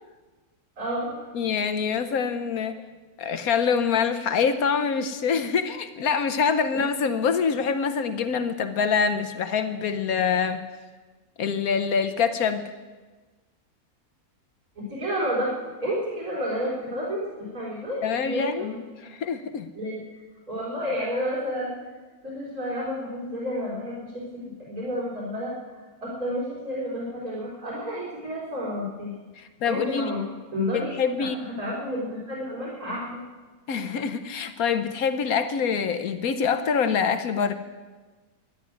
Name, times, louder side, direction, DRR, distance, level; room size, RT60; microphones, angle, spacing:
voice 1, 0.8-1.3 14.8-15.5 15.8-18.8 19.7-20.2 20.5-21.7 22.2-25.5 26.0-29.1 29.7-30.2 30.5-33.2, equal, 80° right, -6 dB, 4.5 m, -30 dB
voice 2, 1.3-2.8 3.2-10.6 11.4-12.6 18.0-18.7 19.1-19.7 29.4-30.1 30.7-31.4 33.7-37.5, left 6 dB, 75° left, 10 dB, 1.2 m, -25 dB
13.5 x 11.0 x 9.3 m, 1.3 s
omnidirectional pair, 1.5 m